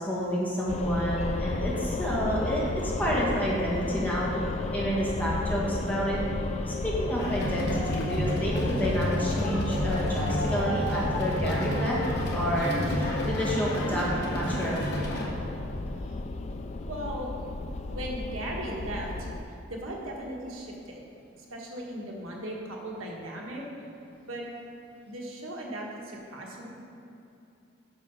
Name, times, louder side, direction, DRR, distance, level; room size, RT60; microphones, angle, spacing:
voice 1, 0.0-4.3 4.7-6.2 6.6-12.0 12.3-14.9, equal, 10° left, -6 dB, 1.6 m, -29 dB
sound 1, 0.7-19.4, left 3 dB, 35° left, 0.3 m, -33 dB
voice 2, 3.8-4.2 16.0-16.2 16.9-17.3 17.9-19.3 19.7-21.0 21.5-23.6 24.3-24.4 25.1-26.7, right 1 dB, 80° right, -2 dB, 1.4 m, -37 dB
sound 2, 7.2-15.3, equal, 55° left, 1.5 m, -31 dB
7.9 x 5.9 x 5.5 m, 2.8 s
head